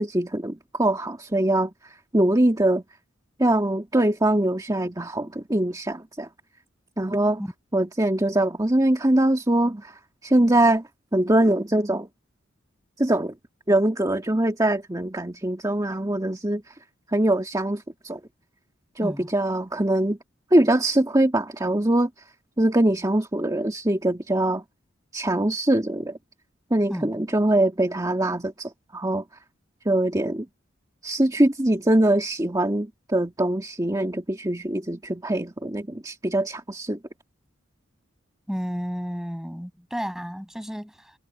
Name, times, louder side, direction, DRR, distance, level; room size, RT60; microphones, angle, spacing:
voice 1, 0.0-1.7 2.1-2.8 3.4-6.3 7.0-7.4 7.7-9.9 10.2-10.8 11.1-12.1 13.0-13.3 13.7-16.6 17.1-18.2 19.0-20.2 20.5-22.1 22.6-24.6 25.1-26.2 26.7-29.2 29.9-30.5 31.0-37.0, right 1 dB, 20° right, 1.9 m, -23 dB
voice 2, 19.0-19.3 26.9-27.2 38.5-41.1, equal, ahead, 7.3 m, -32 dB
head